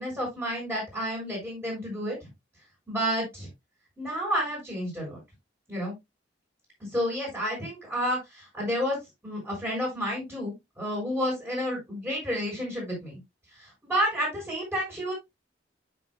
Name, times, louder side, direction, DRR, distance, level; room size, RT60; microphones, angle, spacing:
voice 1, 0.0-2.1 2.9-3.5 4.0-5.2 5.7-5.9 6.9-9.0 9.2-13.2 13.8-15.1, equal, 10° right, -5 dB, 6.0 m, -30 dB
9.8 x 6.5 x 2.2 m, 0.19 s
head